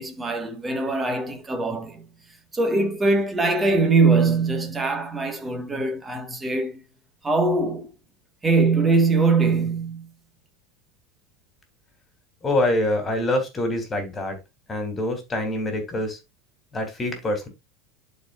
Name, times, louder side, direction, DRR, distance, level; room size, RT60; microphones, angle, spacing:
voice 1, 0.0-2.0 2.5-6.8 7.2-7.9 8.4-10.1, right 3 dB, 15° right, 1.6 m, -22 dB
voice 2, 12.4-14.4 14.7-16.2 16.7-17.5, left 1 dB, 20° left, 3.2 m, -25 dB
11.5 x 4.8 x 2.5 m
supercardioid pair, 125°, 0 cm